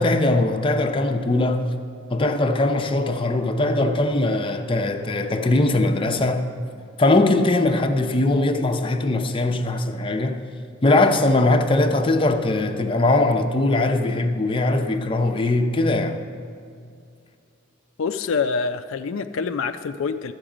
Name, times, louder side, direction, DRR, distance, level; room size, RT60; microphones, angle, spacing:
voice 1, 0.0-1.7 2.1-6.4 7.0-10.4 10.8-16.2, left 2 dB, 25° left, 0.6 m, -20 dB
voice 2, 18.0-20.3, left 5 dB, 75° left, 0.4 m, -26 dB
12.5 x 7.9 x 5.0 m
head